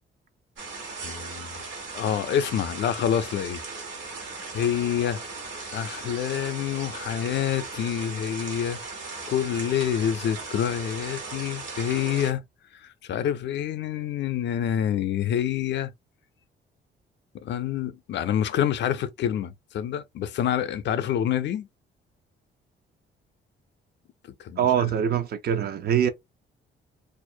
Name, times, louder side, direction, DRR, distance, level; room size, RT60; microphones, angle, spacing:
sound 1, 0.6-12.3, right 3 dB, 70° right, 1.1 m, -37 dB
voice 1, 1.0-1.6 1.9-3.6 4.5-5.2 5.7-8.8 9.3-12.4 12.7-15.9 17.4-21.7 24.4-24.9, left 9 dB, 65° left, 0.4 m, -27 dB
voice 2, 24.6-26.1, right 9 dB, 50° right, 0.5 m, -23 dB
2.4 x 2.0 x 2.6 m
cardioid pair, 90°, 20 cm